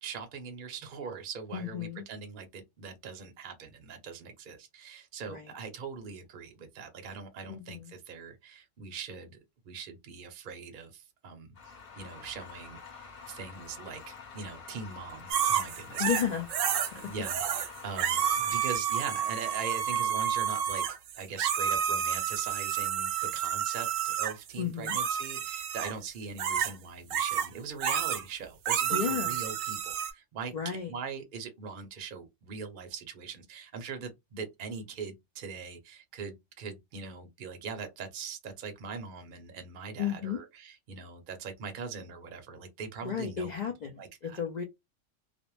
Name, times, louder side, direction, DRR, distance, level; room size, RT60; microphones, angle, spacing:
voice 1, 0.0-9.4 9.7-16.4 16.9-20.9 21.2-43.5 44.0-44.4, right 5 dB, 55° right, 0.6 m, -41 dB
voice 2, 1.5-2.0 5.3-5.5 7.5-7.9 16.0-16.5 24.6-25.0 28.9-29.3 30.5-30.9 40.0-40.4 43.0-43.9 44.2-44.6, left 8 dB, 80° left, 0.4 m, -33 dB
sound 1, 11.5-18.5, left 5 dB, 50° left, 0.9 m, -47 dB
sound 2, 15.3-16.9 17.2-17.7 18.0-24.4 24.9-25.9 26.4-26.7 27.1-27.5 27.8-28.2 28.7-30.1, right 8 dB, 85° right, 1.0 m, -30 dB
2.4 x 2.0 x 3.0 m
omnidirectional pair, 1.3 m